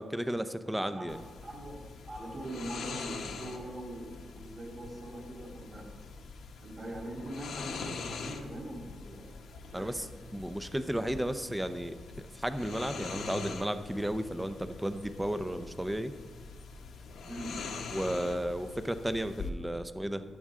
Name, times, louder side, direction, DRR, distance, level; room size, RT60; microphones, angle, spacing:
voice 1, 0.0-1.2 9.7-10.1 10.3-11.9 12.3-16.1 17.9-20.2, right 1 dB, 10° right, 10 dB, 0.7 m, -33 dB
sound 1, 1.1-19.5, left 4 dB, 80° left, 1.2 m, -44 dB
voice 2, 1.4-5.9 6.6-10.0 17.3-17.6, right 1 dB, 35° right, -1 dB, 3.8 m, -42 dB
14.0 x 10.5 x 3.8 m, 1.5 s
cardioid pair, 95°, 0 cm